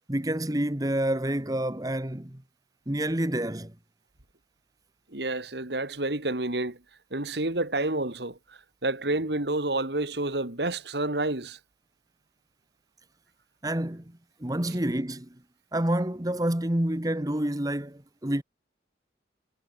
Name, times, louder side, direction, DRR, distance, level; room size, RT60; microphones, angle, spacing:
voice 1, 0.1-2.4 2.9-3.7 13.6-15.3 15.7-18.4, right 1 dB, 20° right, 1.4 m, -28 dB
voice 2, 5.1-6.8 7.1-11.6 14.7-14.8, right 2 dB, 70° right, 2.7 m, -29 dB
head